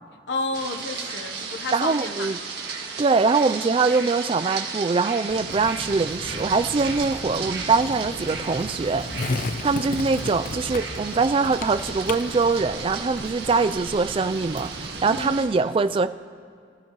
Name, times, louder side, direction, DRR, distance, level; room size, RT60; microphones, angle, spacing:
voice 1, 0.3-2.3 15.0-15.5, left 3 dB, 65° left, 5 dB, 0.9 m, -31 dB
sound 1, 0.5-15.4, right 5 dB, 60° right, 2.0 m, -35 dB
voice 2, 1.7-2.4 3.0-9.1 9.6-16.1, right 4 dB, 30° right, 11 dB, 0.3 m, -23 dB
Skateboard, 5.3-13.3, left 3 dB, 45° left, 0.4 m, -35 dB
sound 2, 5.5-15.3, right 1 dB, 85° right, 1.3 m, -39 dB
24.0 x 13.5 x 3.0 m, 2.2 s
head